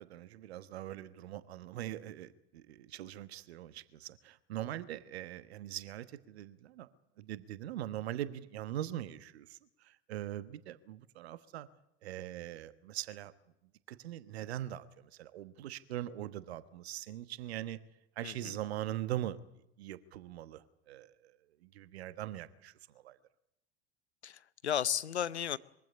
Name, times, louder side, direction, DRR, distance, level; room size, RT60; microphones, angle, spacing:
voice 1, 0.0-6.9 7.2-11.7 12.0-13.3 13.9-17.8 18.2-19.4 19.8-21.4 21.6-22.7 23.0-23.2, right 13 dB, 70° right, 15 dB, 1.2 m, -42 dB
voice 2, 24.2-25.6, left 9 dB, 85° left, 19 dB, 0.8 m, -34 dB
23.0 x 15.5 x 9.7 m, 0.85 s
figure-of-eight pair, 75°, 32 cm